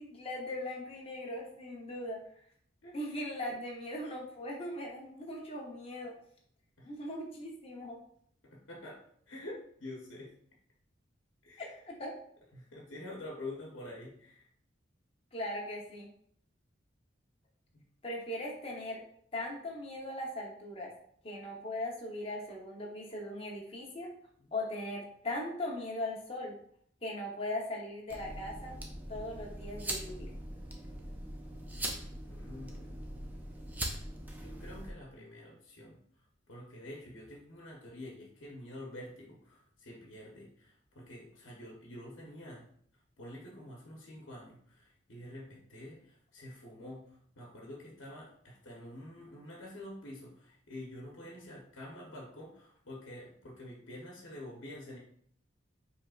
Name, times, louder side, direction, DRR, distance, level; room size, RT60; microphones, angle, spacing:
voice 1, 0.0-2.2 2.9-6.1 6.8-8.0 11.6-12.1 15.3-16.1 18.0-19.0 19.3-20.9 21.2-24.1 24.5-26.5 27.0-28.8 29.1-30.3, left 1 dB, 30° left, -2 dB, 0.8 m, -39 dB
voice 2, 8.4-10.3 11.4-11.8 12.5-14.5 17.7-17.8 24.4-24.5 32.3-33.3 34.3-36.0 36.5-42.7 43.2-55.0, left 1 dB, 80° left, -2 dB, 1.0 m, -47 dB
sound 1, 28.1-34.9, right 1 dB, 10° right, 0.4 m, -41 dB
5.2 x 3.4 x 2.4 m, 0.62 s
head